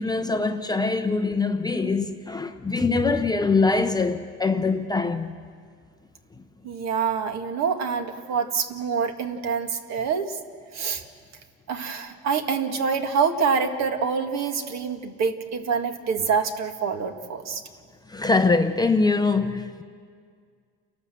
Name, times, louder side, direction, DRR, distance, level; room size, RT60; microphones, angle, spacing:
voice 1, 0.0-5.4 6.4-6.5 18.1-19.8, left 3 dB, 10° left, 0.8 m, -23 dB
voice 2, 6.6-10.4 10.7-11.0 11.7-17.6, right 6 dB, 50° right, 1.9 m, -26 dB
29.0 x 12.5 x 7.7 m
supercardioid pair, 115°, 34 cm